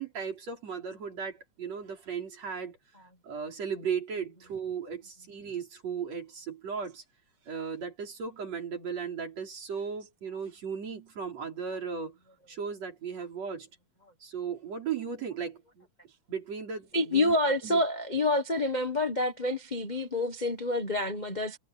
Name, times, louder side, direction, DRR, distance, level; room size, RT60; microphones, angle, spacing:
voice 1, 0.0-2.8 3.2-7.0 7.5-12.2 12.5-13.7 14.2-15.9 16.3-17.4 17.6-17.8, right 6 dB, 60° right, 5.3 m, -36 dB
voice 2, 16.9-21.6, left 2 dB, 60° left, 0.4 m, -28 dB
omnidirectional pair, 3.3 m